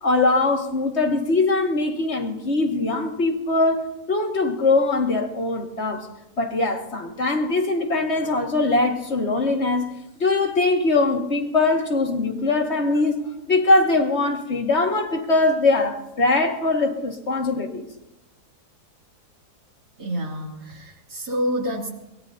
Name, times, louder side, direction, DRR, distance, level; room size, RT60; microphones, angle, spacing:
voice 1, 0.0-3.8 4.1-6.1 6.4-9.9 10.2-13.2 13.5-17.9, left 3 dB, 45° left, 2 dB, 2.2 m, -21 dB
voice 2, 20.0-21.9, equal, 80° right, -2 dB, 3.4 m, -28 dB
23.0 x 22.0 x 2.8 m, 0.94 s
omnidirectional pair, 1.7 m